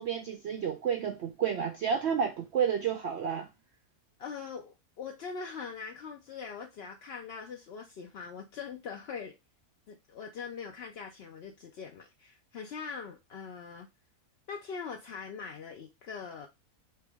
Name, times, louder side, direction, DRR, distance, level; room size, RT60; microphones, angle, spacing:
voice 1, 0.0-3.5, right 7 dB, 70° right, 0.6 m, -30 dB
voice 2, 4.2-9.4 9.9-13.9 14.5-16.5, left 5 dB, 60° left, 0.7 m, -42 dB
4.5 x 2.9 x 3.4 m
omnidirectional pair, 1.6 m